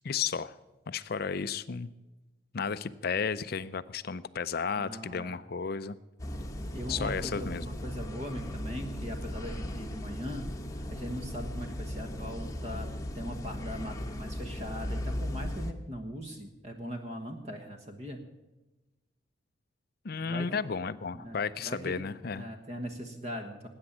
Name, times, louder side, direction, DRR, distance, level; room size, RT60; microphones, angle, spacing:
voice 1, 0.0-0.5 0.9-1.9 2.5-6.0 6.9-7.6 20.0-22.5, left 6 dB, 50° left, 14 dB, 0.5 m, -33 dB
voice 2, 4.8-5.4 6.7-10.5 10.9-12.9 13.1-18.2 20.2-20.6 21.1-22.0 22.3-23.7, equal, 35° right, 4 dB, 1.3 m, -40 dB
sound 1, 6.2-15.7, left 1 dB, 15° left, 1.0 m, -37 dB
19.5 x 8.9 x 7.2 m, 1.1 s
head